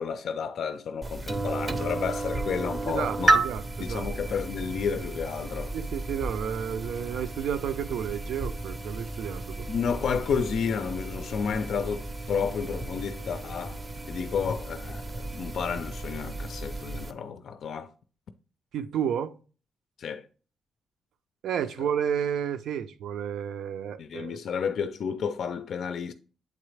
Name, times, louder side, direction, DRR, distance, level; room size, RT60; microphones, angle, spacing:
voice 1, 0.0-3.5 3.8-5.8 9.7-17.9 20.0-20.3 21.8-21.9 24.0-26.1, left 6 dB, 55° left, 0.4 m, -31 dB
sound 1, 1.0-17.1, right 2 dB, 20° right, 0.6 m, -33 dB
voice 2, 2.8-4.0 5.7-9.7 18.7-19.4 21.4-24.4, right 8 dB, 75° right, 0.6 m, -31 dB
8.4 x 3.9 x 3.3 m
cardioid pair, 170°, 0 cm